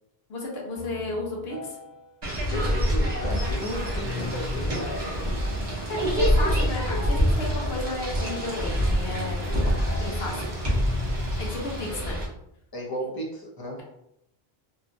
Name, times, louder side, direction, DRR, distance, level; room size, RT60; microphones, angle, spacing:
voice 1, 0.3-1.8 5.6-9.5 9.9-10.5 11.4-12.1, left 1 dB, 80° left, -2 dB, 1.0 m, -33 dB
sound 1, 0.7-11.5, left 5 dB, 5° left, 0.8 m, -39 dB
sound 2, 2.2-12.3, equal, 30° right, 0.7 m, -26 dB
voice 2, 2.5-5.3 11.9-12.0 12.7-13.8, equal, 30° left, -2 dB, 0.5 m, -34 dB
sound 3, 3.4-11.9, right 2 dB, 80° right, 0.9 m, -45 dB
2.9 x 2.3 x 2.5 m, 0.79 s
omnidirectional pair, 1.0 m